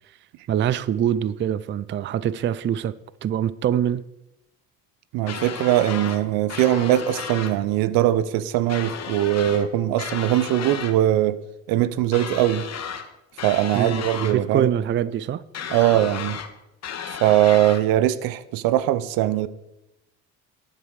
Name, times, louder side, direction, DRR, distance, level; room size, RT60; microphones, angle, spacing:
voice 1, 0.5-2.9 3.2-4.0 13.7-15.4, right 10 dB, 35° right, 0.4 m, -24 dB
voice 2, 5.1-11.4 11.7-12.7 13.4-14.7 15.7-16.4 17.1-19.5, right 13 dB, 80° right, 0.7 m, -21 dB
sound 1, 5.3-6.2 6.5-7.5 8.7-9.7 10.0-10.9 12.1-13.1 13.4-14.4 15.5-16.5 16.8-17.8, left 7 dB, 50° left, 1.4 m, -33 dB
11.0 x 8.9 x 4.8 m
supercardioid pair, 80°, 35 cm